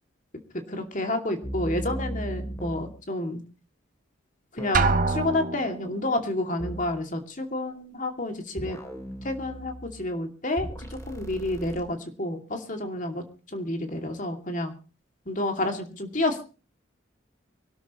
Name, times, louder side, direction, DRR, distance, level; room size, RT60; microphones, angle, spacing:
voice 1, 0.7-3.4 4.5-8.8 9.2-10.7 11.1-13.2 13.5-14.7 15.3-16.4, left 1 dB, 40° left, 5 dB, 2.6 m, -29 dB
sound 1, 1.4-2.9 4.6-5.1 6.6-6.9 8.6-10.1 10.6-11.8, right 1 dB, 15° left, 3.1 m, -36 dB
Drum, 4.7-5.9, right 3 dB, 40° right, 0.9 m, -24 dB
24.5 x 12.5 x 3.1 m, 0.34 s
head